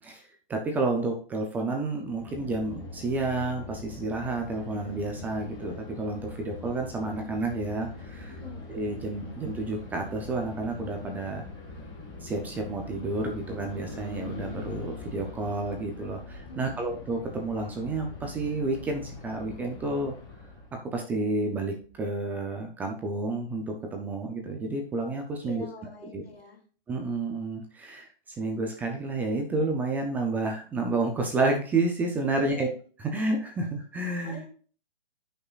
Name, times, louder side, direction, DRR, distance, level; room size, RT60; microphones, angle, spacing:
voice 1, 0.0-8.3 8.7-11.4 12.2-20.1 20.9-25.6 26.1-26.2 26.9-32.7 33.1-34.5, right 2 dB, 5° right, 3 dB, 0.5 m, -30 dB
sound 1, 2.1-20.8, left 3 dB, 15° left, 1.8 m, -42 dB
voice 2, 8.3-8.7 16.5-17.0 25.4-26.6 32.2-32.7 34.2-34.5, left 3 dB, 85° left, 2 dB, 3.2 m, -45 dB
13.5 x 5.7 x 2.4 m, 0.41 s
hypercardioid pair, 155°, 30 cm